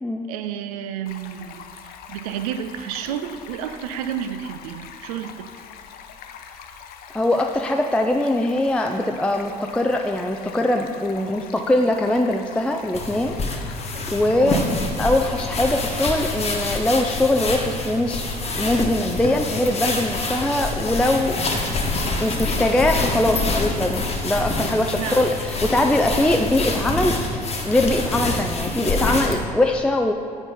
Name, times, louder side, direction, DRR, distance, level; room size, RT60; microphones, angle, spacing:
voice 1, 0.3-1.6 2.1-5.5 14.4-14.7 25.0-25.3, right 9 dB, 65° right, 9 dB, 0.5 m, -31 dB
Stream, 1.1-14.7, left 7 dB, 50° left, 0.6 m, -42 dB
voice 2, 7.1-13.8 14.1-14.6 15.0-21.4 22.2-30.1, left 1 dB, 5° left, 3 dB, 0.4 m, -22 dB
sound 1, 12.9-29.4, left 2 dB, 30° left, 1.2 m, -26 dB
8.7 x 4.4 x 5.3 m, 2.4 s
figure-of-eight pair, 55°, 20 cm